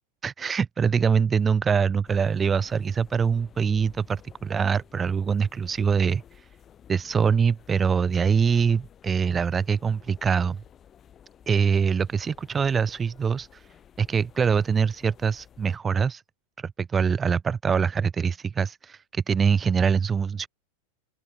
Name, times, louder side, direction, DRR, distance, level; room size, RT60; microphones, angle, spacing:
voice 1, 0.2-6.5 6.9-10.6 11.5-13.7 14.0-16.2 16.6-20.5, right 6 dB, 20° right, 0.3 m, -24 dB
sound 1, 2.0-15.8, left 9 dB, 25° left, 1.6 m, -53 dB
open air
figure-of-eight pair, 90°, 0 cm